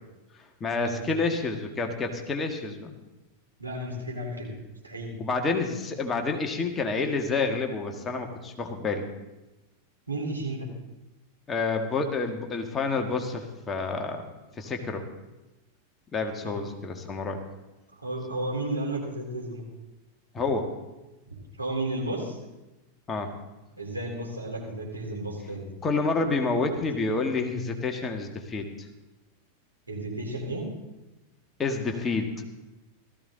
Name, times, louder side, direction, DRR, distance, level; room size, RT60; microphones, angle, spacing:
voice 1, 0.6-2.9 5.2-9.1 11.5-15.1 16.1-17.4 20.3-20.7 23.1-23.3 25.8-28.9 31.6-32.3, left 3 dB, 20° left, 4 dB, 1.8 m, -29 dB
voice 2, 3.6-4.5 4.8-5.2 10.1-10.7 16.4-16.6 18.0-19.6 21.6-22.4 23.8-25.7 29.9-30.7, right 1 dB, 80° right, -2 dB, 3.8 m, -33 dB
16.5 x 14.0 x 3.9 m, 1.0 s
figure-of-eight pair, 90°, 0 cm